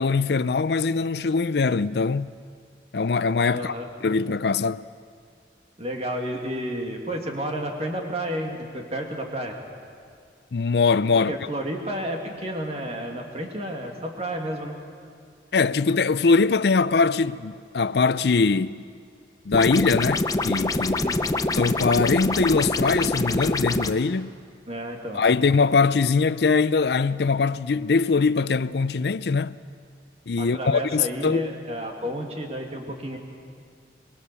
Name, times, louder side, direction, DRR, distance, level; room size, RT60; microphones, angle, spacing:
voice 1, 0.0-2.3 2.9-3.8 4.0-4.8 10.5-11.4 15.5-18.8 19.5-21.0 21.5-24.3 25.1-29.6 30.3-31.5, left 4 dB, 70° left, 0.5 m, -22 dB
voice 2, 3.5-3.9 5.8-9.6 11.3-14.8 21.0-21.2 24.7-25.4 30.4-33.2, equal, 35° right, 2.4 m, -31 dB
sound 1, 19.5-23.9, left 2 dB, 20° left, 0.6 m, -25 dB
23.5 x 21.0 x 6.9 m
head